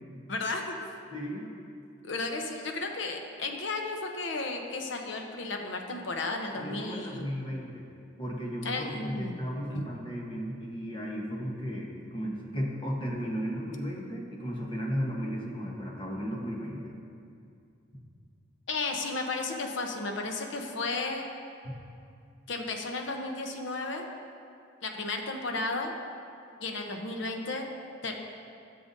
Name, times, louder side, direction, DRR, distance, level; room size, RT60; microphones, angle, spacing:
voice 1, 0.3-0.8 2.0-7.3 8.6-9.4 9.7-9.8 18.7-21.3 22.5-24.1 24.8-25.9 26.6-27.7 28.0-28.1, left 3 dB, 75° left, 3 dB, 0.8 m, -33 dB
voice 2, 1.1-1.5 6.5-7.9 8.2-17.0 21.6-21.7, equal, 25° left, -2 dB, 1.1 m, -35 dB
13.5 x 6.8 x 2.7 m, 2.5 s
head